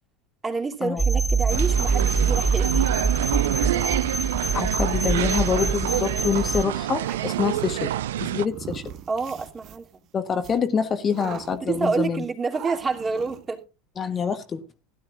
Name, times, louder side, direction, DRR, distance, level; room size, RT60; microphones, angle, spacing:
voice 1, 0.4-2.8 7.4-7.6 9.1-10.0 11.6-13.6, right 4 dB, 20° right, 2.9 m, -28 dB
sound 1, 1.0-6.6, right 4 dB, ahead, 1.0 m, -24 dB
sound 2, 1.5-8.5, right 12 dB, 75° right, 0.5 m, -27 dB
voice 2, 4.5-7.9 8.2-8.8 10.1-12.2 14.0-14.6, left 6 dB, 30° left, 1.3 m, -26 dB
sound 3, 6.3-7.7 8.5-10.0 10.4-10.6 11.1-12.1 12.5-13.5, right 9 dB, 45° right, 1.5 m, -40 dB
16.0 x 11.5 x 2.5 m
hypercardioid pair, 80°, 0 cm